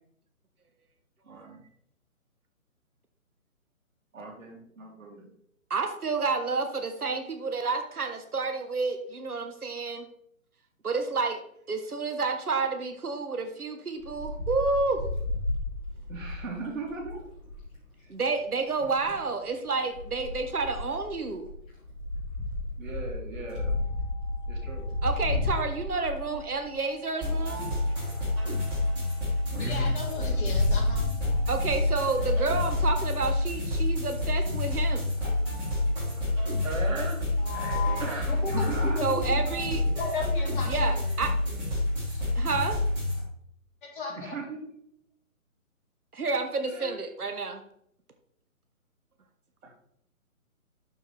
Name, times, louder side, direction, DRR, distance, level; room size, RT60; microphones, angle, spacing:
voice 1, 1.2-1.7 4.1-5.3 16.1-17.2 18.0-18.1 22.8-23.8 24.5-24.9 30.0-30.4 36.6-37.3 38.0-39.4 39.8-40.0 44.1-44.8 46.7-47.0 49.6-49.7, right 3 dB, 65° right, 0 dB, 2.8 m, -38 dB
voice 2, 5.7-10.1 10.8-11.4 11.7-15.0 18.1-21.5 25.0-27.7 31.5-35.1 39.0-39.8 40.6-41.3 42.3-42.8 46.1-47.6, right 4 dB, 90° right, 6 dB, 1.3 m, -30 dB
Wind, 14.0-17.7 18.8-19.2 19.9-26.9 27.5-27.6 27.8-27.9 28.3-28.4 28.7-28.8 29.0-29.1 29.6-32.9, left 2 dB, 10° left, 2.4 m, -32 dB
sound 1, 23.4-33.4, left 6 dB, 55° left, 2.5 m, -54 dB
sound 2, 27.2-43.2, left 2 dB, 10° right, 2.9 m, -28 dB
voice 3, 29.6-31.1 37.4-38.0 38.3-39.5 40.0-40.9 43.8-44.2, left 4 dB, 35° left, -2 dB, 2.5 m, -35 dB
11.5 x 4.6 x 3.4 m, 0.70 s
figure-of-eight pair, 150°, 43 cm